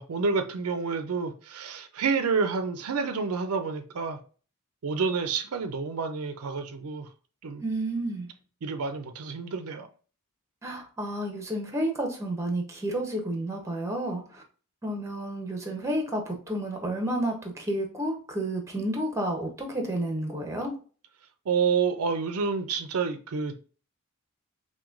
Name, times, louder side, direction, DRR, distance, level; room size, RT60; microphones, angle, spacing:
voice 1, 0.0-4.2 4.8-7.1 7.4-7.6 8.6-9.9 21.5-23.5, right 5 dB, 75° right, 0.5 m, -29 dB
voice 2, 7.6-8.3 10.6-14.4 14.8-20.7, right 1 dB, 15° right, 0.7 m, -31 dB
5.8 x 2.2 x 2.5 m
head